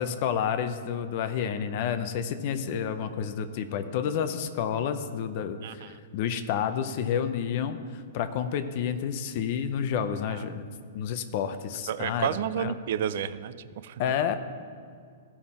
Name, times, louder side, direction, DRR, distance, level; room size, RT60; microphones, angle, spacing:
voice 1, 0.0-10.6 10.9-12.3 12.6-12.7 14.0-14.4, left 8 dB, 40° left, 10 dB, 0.5 m, -30 dB
voice 2, 5.6-5.9 10.3-10.4 11.8-14.0, right 9 dB, 50° right, 15 dB, 0.4 m, -31 dB
15.0 x 5.7 x 4.3 m, 2.2 s
hypercardioid pair, 165°, 0 cm